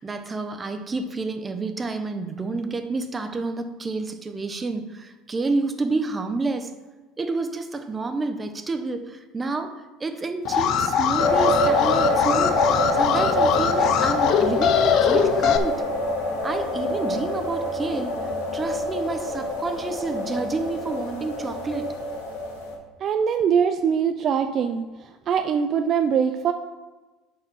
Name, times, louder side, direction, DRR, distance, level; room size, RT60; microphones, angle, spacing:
voice 1, 0.0-6.7 7.2-15.8 16.4-21.9, right 3 dB, 20° right, 8 dB, 0.9 m, -29 dB
Alarm, 10.4-15.6, left 8 dB, 55° left, 0.7 m, -22 dB
sound 1, 11.2-22.7, left 1 dB, 85° left, 2.7 m, -26 dB
voice 2, 23.0-26.5, right 7 dB, 45° right, 7 dB, 0.5 m, -23 dB
8.8 x 4.9 x 5.6 m, 1.2 s
supercardioid pair, 110°, 0 cm